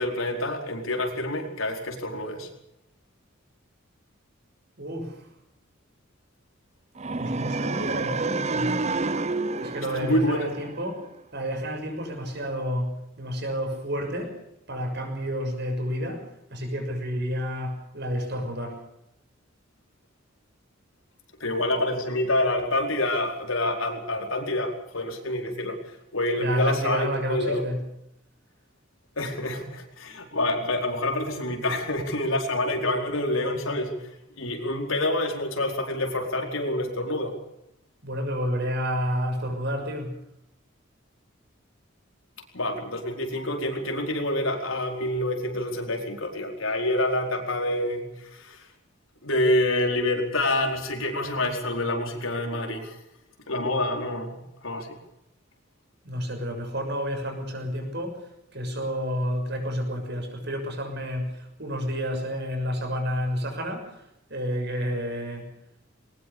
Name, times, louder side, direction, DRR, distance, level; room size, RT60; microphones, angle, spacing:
voice 1, 0.0-2.5 9.9-10.5 21.4-25.8 26.1-27.6 29.2-33.9 34.4-37.3 42.5-48.7 49.2-53.0 53.5-54.9, left 1 dB, 85° left, 3 dB, 4.7 m, -27 dB
voice 2, 4.8-5.3 7.1-8.9 9.6-11.0 11.3-14.4 14.7-18.8 26.4-27.8 38.0-40.2 56.0-58.2 58.5-64.0 64.3-65.5, equal, 55° right, 4 dB, 6.7 m, -30 dB
sound 1, 7.0-11.1, right 3 dB, 35° right, 0.8 m, -29 dB
21.5 x 19.5 x 7.0 m, 0.82 s
head